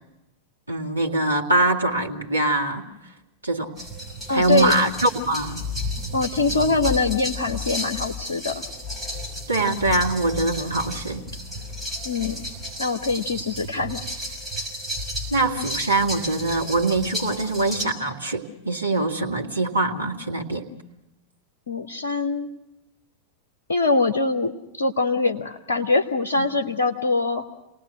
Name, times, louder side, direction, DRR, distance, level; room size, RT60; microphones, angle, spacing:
voice 1, 0.7-2.9 3.4-3.7 4.3-5.6 9.5-11.2 15.3-20.7 26.4-26.5, right 2 dB, 80° right, -1 dB, 1.9 m, -23 dB
sound 1, 3.8-17.8, left 1 dB, ahead, 6.2 m, -32 dB
voice 2, 4.3-4.7 6.1-8.6 12.0-12.5 12.8-14.0 21.7-22.5 23.7-27.4, left 3 dB, 70° left, 7 dB, 0.9 m, -23 dB
28.5 x 19.0 x 6.4 m, 0.93 s
figure-of-eight pair, 90°, 0 cm